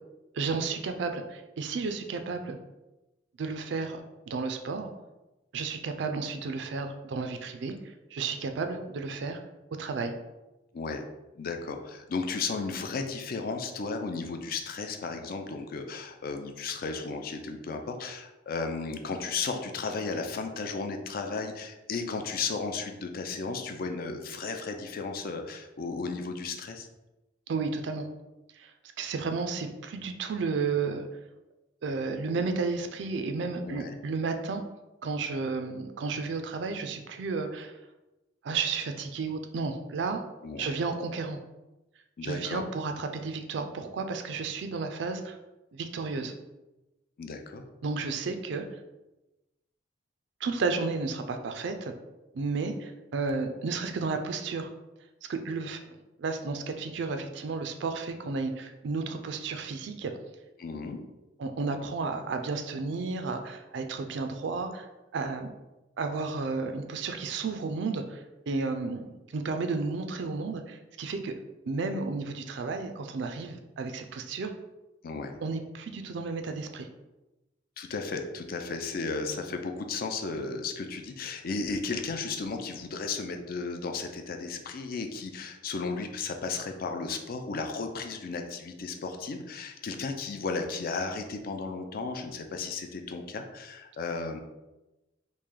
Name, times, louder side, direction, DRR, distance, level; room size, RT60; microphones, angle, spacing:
voice 1, 0.3-2.6 3.4-4.0 4.3-4.9 5.5-7.7 8.1-9.4 9.8-10.1 27.5-28.1 28.6-31.1 31.8-34.6 35.0-37.7 38.4-40.2 40.6-41.4 42.2-45.4 45.7-46.3 47.8-48.6 50.4-51.9 52.3-54.7 55.3-55.8 56.2-60.1 61.4-65.5 66.0-71.3 71.7-74.5 75.4-76.9, right 4 dB, 65° right, 6 dB, 0.4 m, -32 dB
voice 2, 11.4-26.9 33.6-34.0 40.4-40.7 42.2-42.7 47.2-47.6 60.6-61.0 75.0-75.4 77.8-94.4, left 4 dB, 50° left, 5 dB, 0.4 m, -34 dB
3.2 x 2.5 x 3.7 m, 1.0 s
head